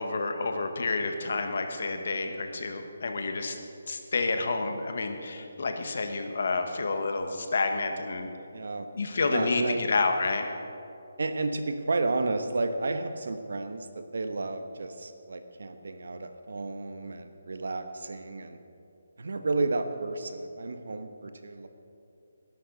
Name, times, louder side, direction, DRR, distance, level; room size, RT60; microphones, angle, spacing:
voice 1, 0.0-3.6 3.9-8.3 8.9-10.5, left 3 dB, 60° left, 5 dB, 1.5 m, -29 dB
voice 2, 8.5-8.9 9.3-9.8 11.2-18.6 19.2-21.7, right 3 dB, 70° right, 8 dB, 1.2 m, -32 dB
19.0 x 11.0 x 4.1 m, 2.6 s
hypercardioid pair, 170°, 0 cm